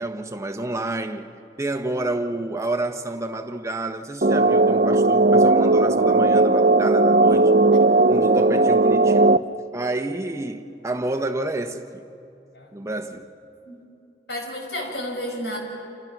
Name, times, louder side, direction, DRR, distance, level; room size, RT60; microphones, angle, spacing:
voice 1, 0.0-1.3 1.6-7.5 8.1-9.4 9.7-12.0 12.7-13.3, right 2 dB, 15° right, 1.1 m, -29 dB
sound 1, 4.2-9.4, right 2 dB, 40° right, 0.6 m, -17 dB
voice 2, 14.3-15.6, equal, 70° left, 5.4 m, -31 dB
30.0 x 27.5 x 6.1 m
head